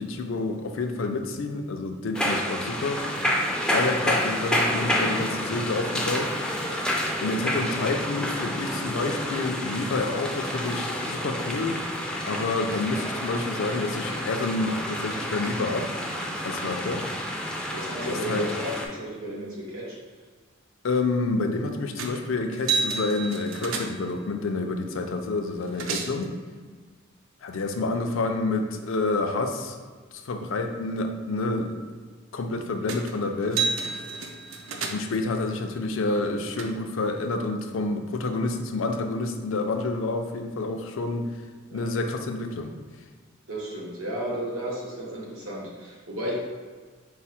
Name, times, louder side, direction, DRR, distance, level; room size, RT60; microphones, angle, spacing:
voice 1, 0.0-3.1 3.7-6.3 7.2-11.8 12.2-15.9 16.4-17.1 18.0-18.5 20.8-26.3 27.4-29.8 30.2-31.8 32.3-34.1 34.9-41.3 41.7-42.7, left 3 dB, 65° left, 5 dB, 0.4 m, -28 dB
sound 1, 2.1-18.9, left 1 dB, 5° left, 0.4 m, -29 dB
voice 2, 17.7-20.0 27.9-28.0 41.7-41.9 43.5-46.4, equal, 85° right, -4 dB, 1.2 m, -33 dB
sound 2, 22.0-22.2 22.5-24.2 25.2-25.3 25.5-26.3 32.9-33.1 33.4-35.2 36.0-36.6, right 4 dB, 70° right, 0.5 m, -31 dB
4.7 x 2.0 x 4.2 m, 1.5 s
head